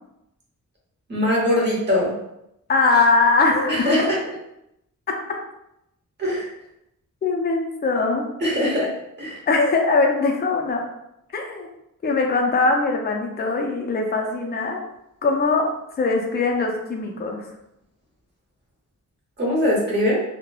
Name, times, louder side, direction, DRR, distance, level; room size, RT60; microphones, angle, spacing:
voice 1, 1.1-2.1 3.7-4.2 6.2-6.5 8.4-8.9 9.2-9.4 19.4-20.2, left 1 dB, 30° right, -4 dB, 0.8 m, -21 dB
voice 2, 2.7-3.9 7.2-8.3 9.5-10.8 11.3-11.7 12.0-14.8 15.2-15.7 16.0-17.4, left 3 dB, 30° left, 1 dB, 0.4 m, -21 dB
3.0 x 2.0 x 2.2 m, 0.82 s
wide cardioid pair, 145°, 33 cm